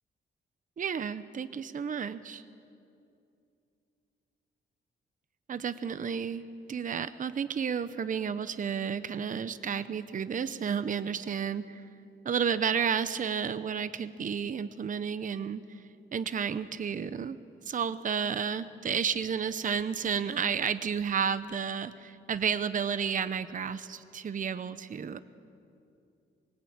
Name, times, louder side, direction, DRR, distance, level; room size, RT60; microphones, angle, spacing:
voice 1, 0.8-2.4 5.5-11.8 12.2-15.8 16.1-17.4 17.7-25.2, right 7 dB, 40° right, 13 dB, 0.8 m, -32 dB
24.0 x 22.5 x 8.8 m, 2.6 s
cardioid pair, 115°, 21 cm